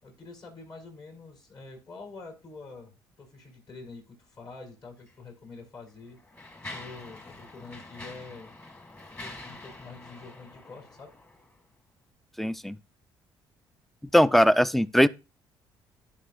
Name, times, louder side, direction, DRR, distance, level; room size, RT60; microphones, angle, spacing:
voice 1, 0.0-6.2 6.7-8.5 9.2-11.1, left 3 dB, 50° left, 3.9 m, -46 dB
Mechanisms, 5.0-5.1 5.9-11.6, left 2 dB, 25° left, 2.0 m, -45 dB
voice 2, 12.4-12.8 14.1-15.1, equal, ahead, 0.4 m, -20 dB
13.0 x 5.7 x 2.2 m
cardioid pair, 85°, 9 cm